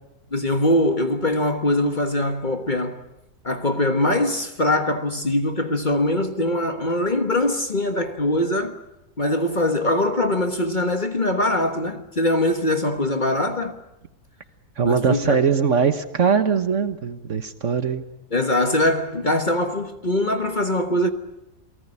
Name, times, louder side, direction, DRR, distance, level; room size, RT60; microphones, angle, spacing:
voice 1, 0.3-3.0 3.4-8.8 9.2-13.8 14.8-15.4 18.3-21.1, left 1 dB, 30° left, 1.4 m, -22 dB
voice 2, 14.8-18.0, right 6 dB, 50° right, 1.4 m, -21 dB
28.5 x 19.0 x 9.8 m
omnidirectional pair, 1.7 m